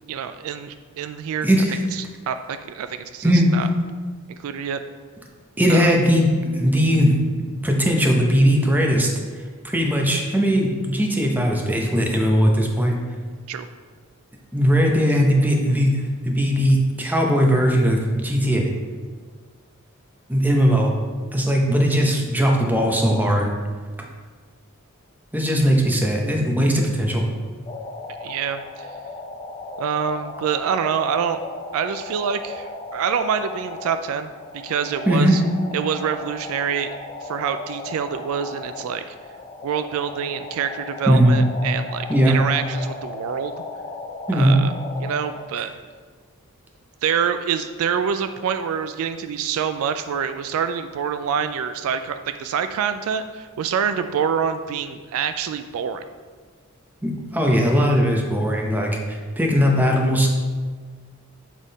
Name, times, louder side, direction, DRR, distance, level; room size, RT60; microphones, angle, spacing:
voice 1, 0.1-1.5 1.9-3.7 4.3-4.8 5.7-6.0 13.5-13.7 28.2-28.9 29.8-31.4 31.7-35.4 35.7-36.9 37.2-39.0 39.6-43.6 44.3-44.7 45.0-45.7 47.0-56.0, right 7 dB, 65° right, 10 dB, 0.3 m, -26 dB
voice 2, 1.4-1.8 3.2-3.5 5.6-7.1 7.6-9.1 9.6-13.0 14.5-18.7 20.3-20.9 21.3-23.5 25.3-27.2 35.1-35.3 41.1-41.3 42.1-42.4 44.3-44.5 57.0-60.3, equal, 10° right, 1 dB, 0.7 m, -19 dB
sound 1, 27.6-45.4, left 3 dB, 30° left, 0.4 m, -36 dB
7.4 x 3.6 x 4.0 m, 1.5 s
head